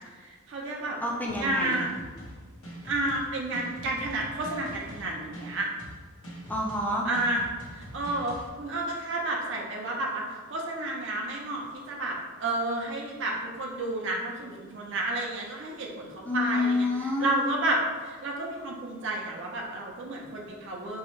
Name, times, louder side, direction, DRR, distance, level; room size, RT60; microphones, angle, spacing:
voice 1, 0.5-1.0 1.3-1.9 2.8-5.7 7.1-7.4 7.8-10.2 10.5-12.2 12.4-16.9 17.2-17.8 18.1-21.0, right 2 dB, 60° right, -2 dB, 0.5 m, -31 dB
voice 2, 1.0-1.8 6.5-7.1 16.3-17.5, left 2 dB, 10° left, -2 dB, 0.4 m, -28 dB
sound 1, 1.3-8.5, equal, 80° left, 0.9 m, -43 dB
4.6 x 2.1 x 2.9 m, 1.5 s
head